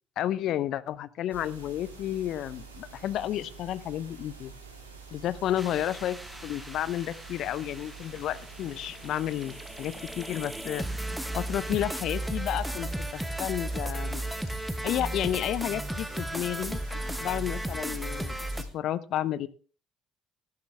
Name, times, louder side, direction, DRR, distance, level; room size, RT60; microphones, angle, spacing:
voice 1, 0.2-4.5 5.1-10.8 11.3-14.2 14.8-18.5 18.7-19.5, left 12 dB, 60° left, 18 dB, 0.7 m, -31 dB
sound 1, 1.3-18.7, right 5 dB, 90° right, 2.3 m, -47 dB
sound 2, 5.6-18.6, right 1 dB, 5° right, 1.1 m, -35 dB
13.5 x 11.5 x 3.4 m, 0.37 s
figure-of-eight pair, 50°, 0 cm